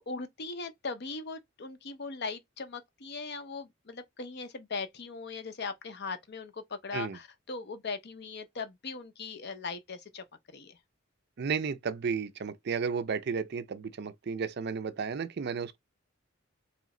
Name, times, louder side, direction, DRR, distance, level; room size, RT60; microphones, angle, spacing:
voice 1, 0.0-10.2 10.5-10.8, left 4 dB, 55° left, 0.7 m, -39 dB
voice 2, 11.4-15.8, right 5 dB, 55° right, 0.4 m, -33 dB
3.1 x 3.0 x 3.7 m
head